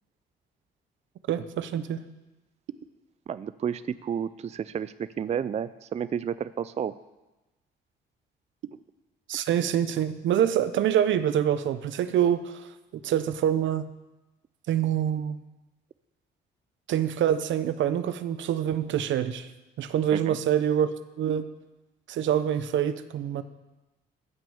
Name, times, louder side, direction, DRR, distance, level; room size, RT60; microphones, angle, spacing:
voice 1, 1.3-2.0 9.3-12.7 13.0-13.9 14.7-15.4 16.9-19.5 19.8-21.5 22.1-23.4, right 10 dB, 70° right, 13 dB, 0.7 m, -26 dB
voice 2, 3.3-6.9 20.1-20.4, right 8 dB, 35° right, 16 dB, 0.4 m, -31 dB
14.0 x 6.1 x 7.1 m, 1.1 s
cardioid pair, 90°, 20 cm